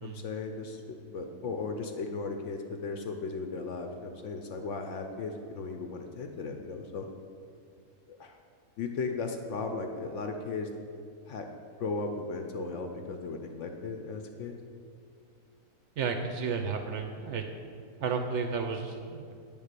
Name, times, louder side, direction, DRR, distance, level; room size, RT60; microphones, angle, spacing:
voice 1, 0.0-7.1 8.1-8.4 8.8-10.7 11.3-11.5 11.8-14.5, left 4 dB, 65° left, 4 dB, 0.8 m, -36 dB
voice 2, 16.0-17.4 18.0-19.3, right 5 dB, 65° right, 5 dB, 0.7 m, -32 dB
9.0 x 3.5 x 6.6 m, 2.3 s
omnidirectional pair, 1.6 m